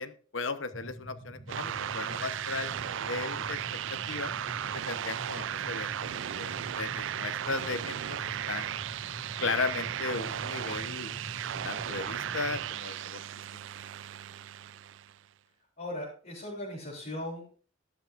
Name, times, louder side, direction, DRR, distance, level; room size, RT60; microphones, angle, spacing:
voice 1, 0.0-3.6 3.9-4.3 4.7-8.2 8.5-8.8 9.4-11.2 11.6-13.2 13.5-13.6, left 4 dB, 75° left, 11 dB, 1.0 m, -36 dB
sound 1, 0.7-12.7, right 1 dB, 20° left, 3.2 m, -45 dB
sound 2, 1.5-15.2, right 9 dB, 70° right, 0.4 m, -36 dB
voice 2, 15.8-17.5, left 1 dB, 50° left, -6 dB, 3.7 m, -38 dB
14.0 x 11.5 x 2.5 m, 0.40 s
head